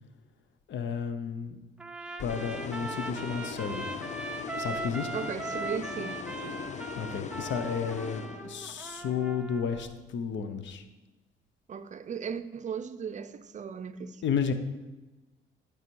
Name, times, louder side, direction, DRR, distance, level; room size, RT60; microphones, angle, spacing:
voice 1, 0.7-1.6 2.2-3.8 4.6-5.1 7.0-10.8 14.2-14.5, left 6 dB, 70° left, 0.8 m, -32 dB
Trumpet, 1.8-9.9, right 2 dB, 5° right, 0.7 m, -39 dB
sound 1, 2.2-8.9, left 6 dB, 35° left, 0.4 m, -40 dB
voice 2, 5.1-6.6 11.7-14.2, right 6 dB, 40° right, 0.5 m, -37 dB
11.5 x 4.9 x 4.6 m
cardioid pair, 90°, 20 cm